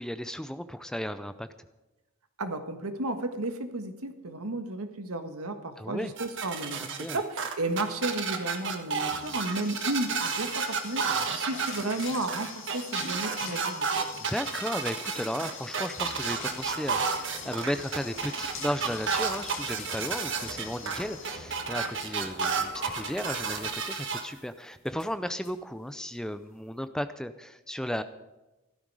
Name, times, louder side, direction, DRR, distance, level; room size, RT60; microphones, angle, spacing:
voice 1, 0.0-1.5 5.8-6.1 6.8-7.2 11.1-11.4 14.2-28.0, equal, 5° left, 11 dB, 0.4 m, -35 dB
voice 2, 2.4-11.0 11.3-13.9, right 2 dB, 75° right, 7 dB, 1.6 m, -33 dB
sound 1, 6.2-24.2, right 5 dB, 55° right, 1.5 m, -31 dB
sound 2, 8.7-24.5 24.9-25.1 25.4-25.5 25.8-26.2, left 5 dB, 60° left, 2.9 m, -44 dB
sound 3, 16.0-23.7, left 1 dB, 35° left, 3.7 m, -48 dB
15.5 x 13.0 x 4.9 m, 1.0 s
head